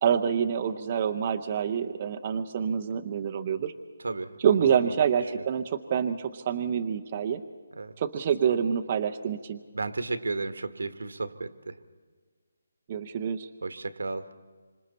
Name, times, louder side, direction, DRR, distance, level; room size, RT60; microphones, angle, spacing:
voice 1, 0.0-3.7 4.4-7.4 8.0-9.6 12.9-13.5, right 8 dB, 25° right, 6 dB, 0.6 m, -27 dB
voice 2, 4.0-4.9 5.3-5.4 7.7-7.9 9.7-11.8 13.6-14.3, right 3 dB, 85° right, 10 dB, 1.5 m, -33 dB
27.0 x 25.5 x 4.2 m, 1.5 s
hypercardioid pair, 175°, 0 cm